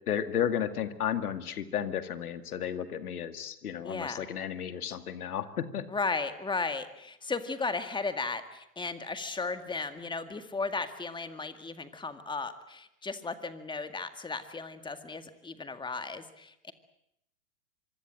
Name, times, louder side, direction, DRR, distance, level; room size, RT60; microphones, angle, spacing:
voice 1, 0.1-5.8, left 9 dB, 70° left, 10 dB, 2.2 m, -33 dB
voice 2, 3.8-4.3 5.9-16.7, left 4 dB, 10° left, 9 dB, 2.0 m, -35 dB
25.5 x 24.5 x 7.7 m, 0.80 s
hypercardioid pair, 105°, 46 cm